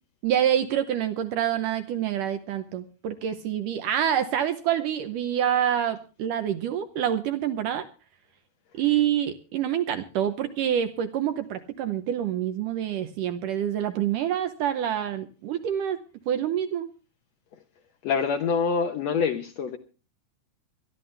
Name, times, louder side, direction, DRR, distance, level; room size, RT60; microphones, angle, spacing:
voice 1, 0.2-7.9 8.8-16.0 16.3-16.9, right 10 dB, 70° right, 9 dB, 2.0 m, -27 dB
voice 2, 18.0-19.8, left 5 dB, 85° left, 5 dB, 1.4 m, -25 dB
22.0 x 13.0 x 3.3 m, 0.35 s
omnidirectional pair, 4.6 m